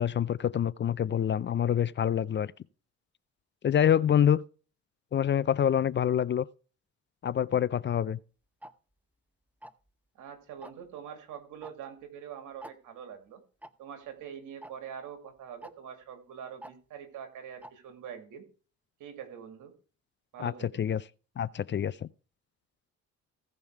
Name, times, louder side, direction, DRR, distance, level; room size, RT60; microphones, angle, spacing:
voice 1, 0.0-2.5 3.6-4.4 5.1-6.5 7.2-8.2 20.4-20.5 20.8-21.0 21.4-22.1, left 9 dB, 40° left, 0.5 m, -26 dB
Tick-tock, 8.6-8.7 9.6-9.9 10.6-10.9 11.6-11.7 12.0-12.1 12.6-12.7 13.6-13.7 14.6-14.7 15.6-15.7 16.6-16.7 17.6-17.7, right 1 dB, 5° right, 0.7 m, -46 dB
voice 2, 10.1-13.4 13.8-18.4 19.0-19.7 20.3-20.8, right 8 dB, 85° right, 2.4 m, -44 dB
16.0 x 5.4 x 4.6 m
cardioid pair, 90°, 30 cm